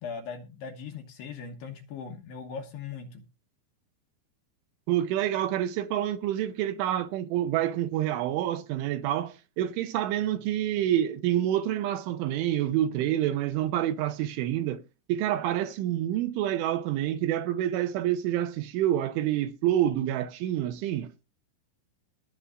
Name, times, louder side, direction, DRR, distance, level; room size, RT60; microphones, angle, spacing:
voice 1, 0.0-3.2, left 5 dB, 65° left, 2.9 m, -39 dB
voice 2, 4.9-14.8 15.1-21.1, right 12 dB, 80° right, 3.1 m, -27 dB
19.5 x 7.0 x 3.8 m
omnidirectional pair, 5.9 m